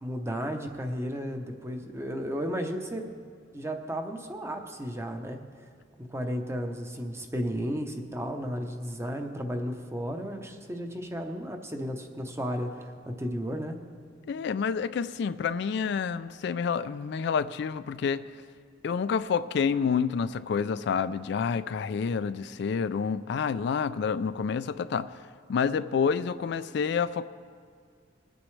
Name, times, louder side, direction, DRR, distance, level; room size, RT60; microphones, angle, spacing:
voice 1, 0.0-3.1 3.5-5.4 6.1-13.8, equal, 15° right, 5 dB, 0.8 m, -33 dB
voice 2, 14.3-18.3 18.8-25.1 25.5-27.3, left 6 dB, 65° left, 13 dB, 0.3 m, -28 dB
21.0 x 9.0 x 3.3 m, 2.1 s
head